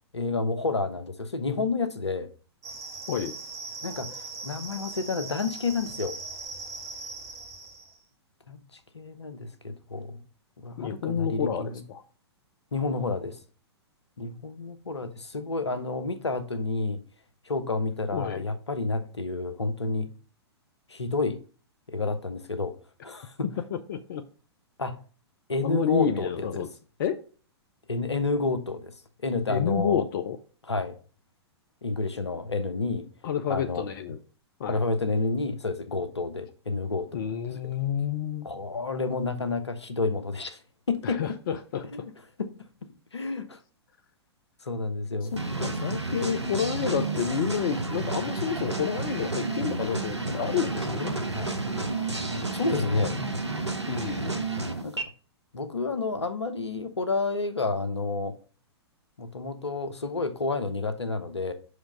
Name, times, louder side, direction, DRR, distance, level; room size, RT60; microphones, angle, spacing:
voice 1, 0.1-2.3 3.8-4.1 4.4-6.2 8.5-10.2 10.6-11.8 12.7-13.3 14.2-17.0 17.4-20.1 20.9-21.4 21.9-22.8 23.0-23.6 24.8-25.0 25.5-26.7 27.9-28.9 29.2-30.1 30.6-31.0 31.8-33.1 33.5-33.9 34.7-37.2 37.5-37.7 38.4-40.6 40.9-41.4 41.8-42.5 43.1-43.6 44.6-45.4 51.3-51.5 52.5-53.1 54.8-55.0 55.5-58.4 59.2-61.5, left 3 dB, 80° left, 1.0 m, -30 dB
sound 1, 2.6-8.0, right 3 dB, 20° right, 1.9 m, -40 dB
voice 2, 10.8-12.0 18.1-18.4 23.7-24.2 25.6-26.7 27.0-27.2 29.5-30.4 33.2-34.2 34.6-34.8 37.1-38.5 41.0-42.1 45.3-51.2 52.6-53.3 53.9-54.4, left 8 dB, 50° left, 0.7 m, -30 dB
sound 2, 45.3-55.0, right 3 dB, 85° right, 1.1 m, -31 dB
5.8 x 5.0 x 5.1 m
figure-of-eight pair, 110°, 14 cm